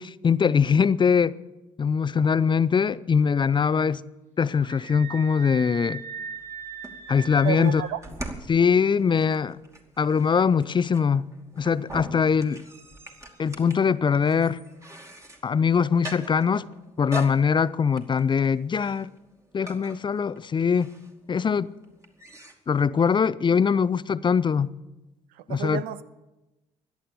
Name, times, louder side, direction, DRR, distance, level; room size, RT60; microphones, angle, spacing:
voice 1, 0.0-1.3 1.8-4.0 4.4-6.0 7.1-7.8 8.5-9.6 10.0-11.3 11.6-12.6 13.4-14.6 15.4-16.7 17.0-19.1 19.5-20.9 21.3-21.7 22.7-24.7 25.5-25.8, left 6 dB, 30° left, 0.5 m, -22 dB
Screaming, 4.6-8.0, right 7 dB, 50° right, 2.9 m, -39 dB
sound 1, 6.4-22.6, right 1 dB, 20° right, 2.5 m, -43 dB
voice 2, 7.4-8.0 25.3-26.0, right 12 dB, 65° right, 0.7 m, -31 dB
16.5 x 11.5 x 7.0 m
hypercardioid pair, 50°, 16 cm